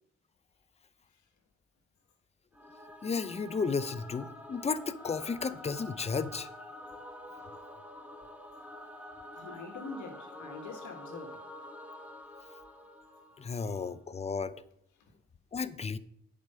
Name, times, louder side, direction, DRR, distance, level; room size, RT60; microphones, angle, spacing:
Singing / Musical instrument, 2.5-13.8, left 1 dB, 5° right, 1.5 m, -47 dB
voice 1, 3.0-6.5 13.4-14.5 15.5-16.0, left 5 dB, 20° left, 0.5 m, -33 dB
voice 2, 9.3-11.4 13.5-13.8 15.0-15.1, left 4 dB, 75° left, 1.5 m, -45 dB
8.7 x 5.1 x 5.5 m
cardioid pair, 90°, 30 cm